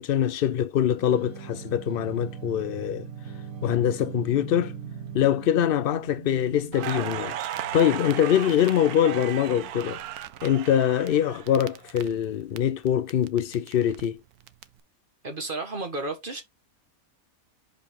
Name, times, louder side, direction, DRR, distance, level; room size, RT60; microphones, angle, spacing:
voice 1, 0.0-3.1 3.6-4.7 5.1-10.0 10.4-14.2, left 10 dB, 75° left, 0.5 m, -24 dB
sound 1, 0.9-10.3, right 6 dB, 65° right, 1.7 m, -41 dB
Crackle, 6.7-12.6 12.9-14.6, right 12 dB, 85° right, 1.2 m, -36 dB
voice 2, 15.2-16.4, right 2 dB, 35° right, 1.6 m, -32 dB
6.5 x 5.1 x 3.7 m
omnidirectional pair, 1.5 m